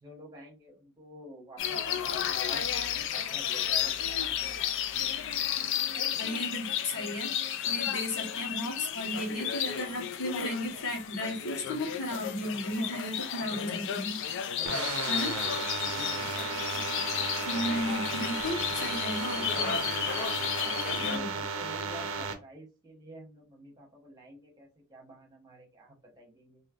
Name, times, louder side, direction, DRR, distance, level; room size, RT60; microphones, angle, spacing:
voice 1, 0.0-5.1 13.4-13.9 14.5-16.7 20.6-26.6, right 1 dB, 20° right, -1 dB, 1.0 m, -49 dB
sound 1, 1.6-21.2, left 9 dB, 55° left, 0.3 m, -33 dB
voice 2, 6.2-7.3 7.6-14.1 15.1-15.5 17.5-19.8 21.0-21.3, left 1 dB, 85° left, 1 dB, 1.2 m, -34 dB
sound 2, 14.7-22.3, right 5 dB, 65° right, 0.5 m, -34 dB
sound 3, 17.6-20.5, left 2 dB, 40° left, 1.6 m, -52 dB
3.2 x 2.6 x 2.5 m, 0.30 s
head